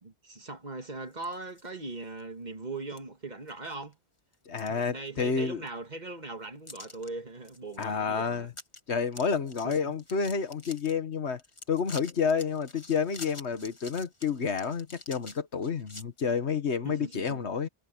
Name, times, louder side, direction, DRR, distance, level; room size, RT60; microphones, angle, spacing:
voice 1, 0.0-4.0 4.6-8.5 9.6-10.0 16.8-17.5, right 3 dB, 45° right, 1.9 m, -40 dB
sound 1, 1.1-1.7 2.2-2.3 3.0-3.1 3.5-3.9 4.3-5.4 5.7-5.8 6.7-7.1 7.4-7.9 8.1-8.2 8.5-8.8 9.1-10.9 11.4-16.0, left 2 dB, 30° left, 1.8 m, -47 dB
voice 2, 4.5-5.6 7.8-8.5 8.9-11.4 11.7-17.7, left 6 dB, 90° left, 1.7 m, -29 dB
omnidirectional pair, 1.1 m